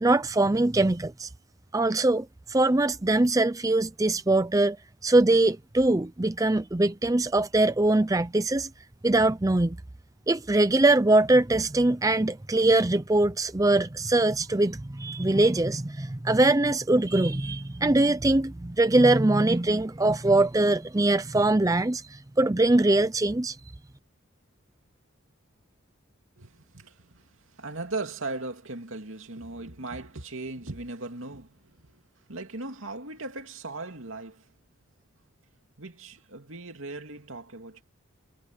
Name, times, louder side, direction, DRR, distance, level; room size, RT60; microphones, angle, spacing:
voice 1, 0.0-1.3 1.7-4.8 5.0-8.7 9.0-9.8 10.3-23.6, right 2 dB, 15° right, 0.5 m, -22 dB
voice 2, 26.4-32.0 32.3-34.5 35.8-37.8, right 2 dB, 75° right, 2.7 m, -38 dB
head